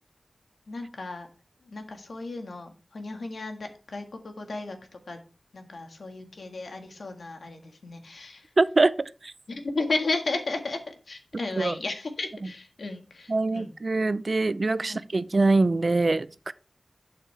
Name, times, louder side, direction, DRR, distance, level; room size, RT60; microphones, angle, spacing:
voice 1, 0.7-1.3 1.6-5.2 5.5-8.5 9.5-13.7 14.8-15.0, left 3 dB, 80° left, 1.8 m, -34 dB
voice 2, 8.6-9.3 11.6-11.8 13.3-16.5, right 3 dB, 50° right, 0.5 m, -24 dB
11.5 x 6.7 x 3.4 m
wide cardioid pair, 70°, 0 cm